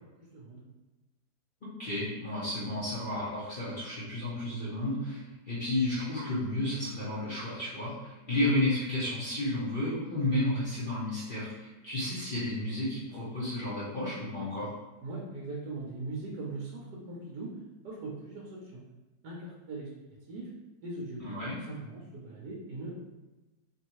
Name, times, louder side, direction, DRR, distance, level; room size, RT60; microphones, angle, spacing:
voice 1, 0.2-0.6 15.0-17.5 17.8-18.8 19.2-19.9 20.3-20.5 20.8-23.0, right 2 dB, 70° right, -3 dB, 1.1 m, -40 dB
voice 2, 1.8-14.7 21.2-21.6, left 1 dB, 45° left, -9 dB, 0.7 m, -32 dB
3.1 x 2.6 x 2.9 m, 1.1 s
omnidirectional pair, 1.9 m